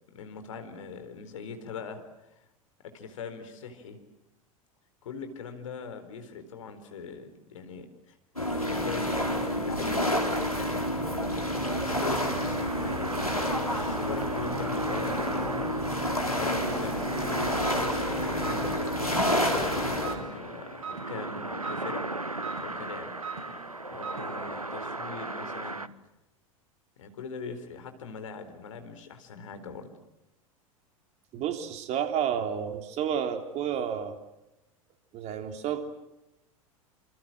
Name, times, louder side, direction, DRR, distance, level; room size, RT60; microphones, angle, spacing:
voice 1, 0.1-2.0 2.3-2.4 2.8-4.0 5.0-8.1 8.5-10.2 10.5-10.9 11.8-15.6 16.2-19.1 19.4-22.0 22.6-23.1 23.9-25.9 27.0-29.9, left 5 dB, 65° left, 8 dB, 4.3 m, -41 dB
sound 1, 8.4-20.2, left 1 dB, 90° left, 3.9 m, -29 dB
sound 2, 11.9-25.9, right 2 dB, 90° right, 1.0 m, -36 dB
sound 3, 17.4-24.7, right 5 dB, 65° right, 7.5 m, -43 dB
voice 2, 31.3-34.2 35.1-35.8, right 8 dB, 35° right, 7 dB, 3.3 m, -30 dB
28.0 x 27.5 x 7.7 m, 0.92 s
figure-of-eight pair, 85°, 18 cm